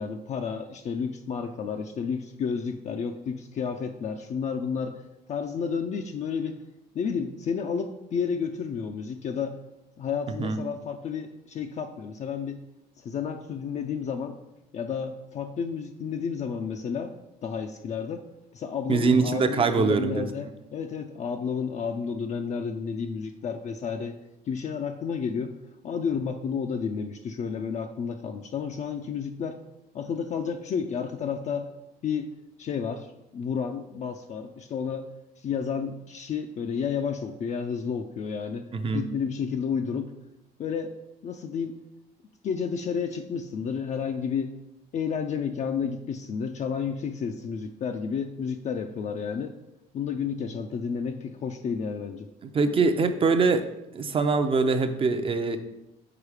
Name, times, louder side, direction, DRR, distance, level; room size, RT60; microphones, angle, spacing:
voice 1, 0.0-5.0 5.3-6.6 6.9-9.6 10.0-12.6 13.0-14.4 14.7-17.1 17.4-18.3 18.5-24.2 24.5-25.6 25.8-29.6 29.9-31.7 32.0-32.3 32.6-35.1 35.4-38.7 38.9-40.1 40.6-40.9 41.2-41.8 42.4-44.5 44.9-49.5 49.9-52.3, left 6 dB, 45° left, 5 dB, 0.4 m, -31 dB
voice 2, 18.9-20.3 38.7-39.1 52.5-53.6 53.9-55.6, right 4 dB, 35° right, 8 dB, 0.5 m, -23 dB
4.9 x 4.7 x 4.8 m, 0.92 s
cardioid pair, 110°, 17 cm